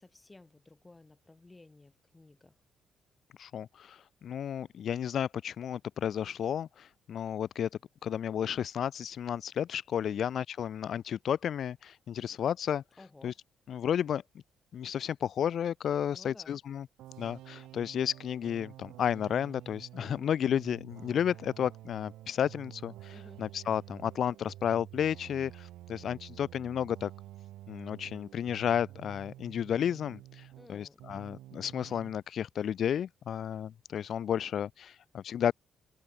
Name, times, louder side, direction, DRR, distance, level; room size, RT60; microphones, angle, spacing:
voice 1, 0.0-2.6 10.0-10.2 13.0-13.4 16.1-16.6 23.1-23.5 30.6-31.0, left 2 dB, 20° left, 6.8 m, -55 dB
voice 2, 3.4-7.7 8.0-12.8 13.2-13.3 13.7-14.2 14.7-16.9 17.2-27.1 27.7-35.5, left 9 dB, 60° left, 0.6 m, -32 dB
sound 1, 17.0-30.7 31.0-32.2, right 15 dB, 85° right, 1.6 m, -50 dB
cardioid pair, 90°, 0 cm